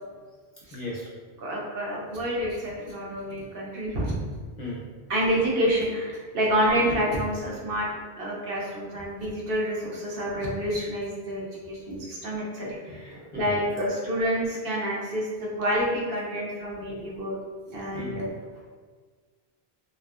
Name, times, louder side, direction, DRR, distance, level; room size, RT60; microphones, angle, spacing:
voice 1, 0.7-1.4 2.8-2.9 3.5-3.7 4.6-4.9 7.7-7.9 9.0-9.1 11.6-11.7 12.9-13.6 16.3-17.2 17.6-18.6, left 1 dB, 50° left, -6 dB, 0.7 m, -40 dB
voice 2, 1.4-4.2 5.1-7.9 8.1-17.4 17.7-18.3, equal, 65° right, -4 dB, 0.8 m, -28 dB
2.5 x 2.3 x 2.3 m, 1.5 s
omnidirectional pair, 1.1 m